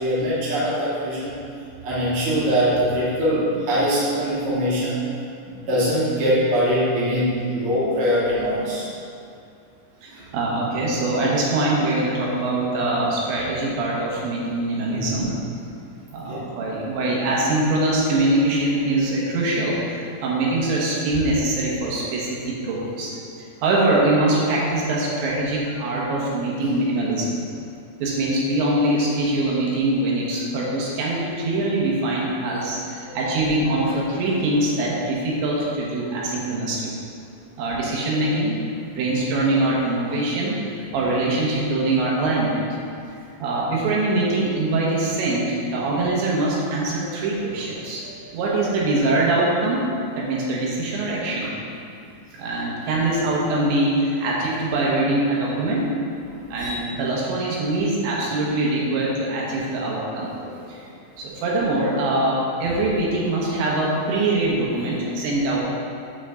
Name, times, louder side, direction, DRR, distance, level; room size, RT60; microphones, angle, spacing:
voice 1, 0.0-1.4 1.8-5.0 5.4-8.8 10.1-10.2 14.9-15.2 16.2-16.4 33.0-33.2 47.0-47.1 56.6-56.7 60.4-60.5, equal, 40° right, -9 dB, 2.6 m, -23 dB
voice 2, 10.0-15.3 16.1-27.4 28.0-36.9 37.6-38.6 38.9-42.7 43.4-48.0 48.3-49.8 50.2-51.5 52.4-55.9 56.5-60.3 60.7-60.8 61.2-65.6, right 2 dB, 85° right, -4 dB, 3.6 m, -23 dB
9.0 x 3.8 x 6.9 m, 2.4 s
omnidirectional pair, 5.0 m